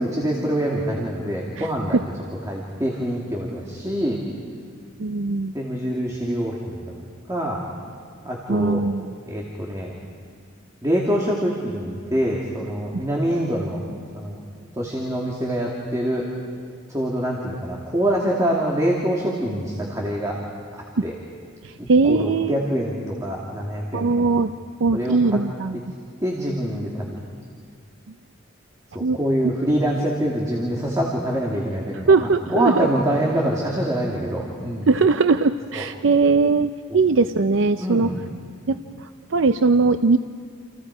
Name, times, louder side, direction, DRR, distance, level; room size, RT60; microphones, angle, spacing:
voice 1, 0.0-2.0 2.5-4.2 5.5-6.8 7.3-7.7 8.2-8.8 9.3-9.9 10.8-13.8 14.2-14.4 14.8-16.3 16.9-20.4 20.7-21.1 21.8-24.3 24.9-25.2 26.2-27.2 28.9-34.9 35.7-35.8 37.8-38.1, equal, 15° right, -3 dB, 2.6 m, -25 dB
voice 2, 1.6-2.0 5.0-5.5 8.5-9.2 21.0-21.1 21.6-22.6 23.9-24.5 24.8-25.8 29.0-29.2 32.1-32.9 34.9-38.1 38.7-40.2, right 4 dB, 65° right, 10 dB, 0.5 m, -20 dB
29.0 x 28.5 x 4.9 m, 2.2 s
head